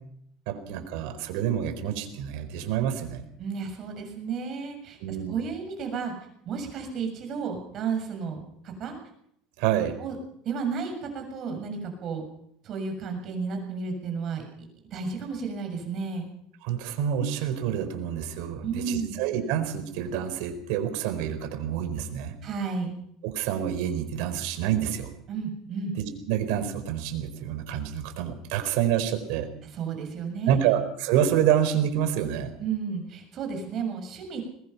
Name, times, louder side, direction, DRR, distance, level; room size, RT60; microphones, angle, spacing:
voice 1, 0.5-3.2 5.0-5.3 9.6-10.0 16.6-22.3 23.2-25.1 26.0-29.5 30.5-32.5, right 10 dB, 70° right, 9 dB, 4.4 m, -27 dB
voice 2, 3.4-6.1 6.4-8.9 10.0-10.2 10.4-12.2 12.6-14.4 14.9-16.3 18.6-19.2 22.4-22.9 25.3-25.9 29.7-30.6 32.6-34.5, right 5 dB, 40° right, 5 dB, 6.8 m, -32 dB
22.5 x 20.0 x 5.8 m, 0.71 s
cardioid pair, 145°, 0 cm